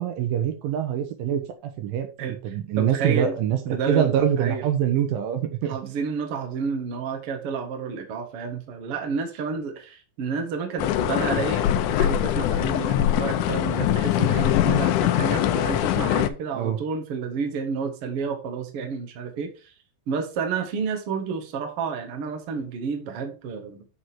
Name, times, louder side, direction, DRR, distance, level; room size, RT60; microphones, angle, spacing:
voice 1, 0.0-2.1 2.4-3.6 3.9-5.8 16.5-16.8, right 9 dB, 75° right, 2.5 m, -24 dB
voice 2, 2.2-3.3 3.7-4.6 5.6-19.7 20.1-23.9, right 5 dB, 50° right, 1.9 m, -30 dB
sound 1, 10.8-16.3, left 12 dB, 80° left, 1.8 m, -22 dB
8.6 x 5.0 x 4.5 m
omnidirectional pair, 4.2 m